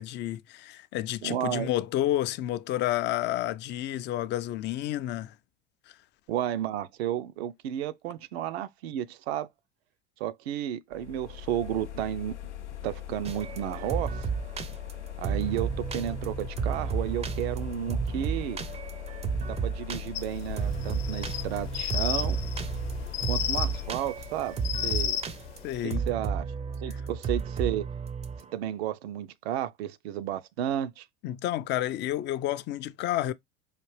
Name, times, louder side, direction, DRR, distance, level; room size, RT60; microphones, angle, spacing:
voice 1, 0.0-5.3 25.6-26.0 26.9-27.0 31.2-33.3, left 13 dB, 35° left, 0.4 m, -30 dB
voice 2, 1.2-1.7 6.3-9.5 10.2-12.3 12.8-14.2 15.2-18.6 19.5-22.4 23.3-24.6 24.8-25.2 26.1-26.4 26.8-27.9 28.5-31.0, right 11 dB, 65° right, 0.6 m, -32 dB
sound 1, 10.9-24.0, left 12 dB, 90° left, 0.5 m, -40 dB
sound 2, 13.3-28.5, right 6 dB, 20° right, 0.5 m, -32 dB
sound 3, 20.1-25.8, left 10 dB, 60° left, 0.8 m, -33 dB
5.0 x 2.5 x 3.2 m
hypercardioid pair, 80°, 34 cm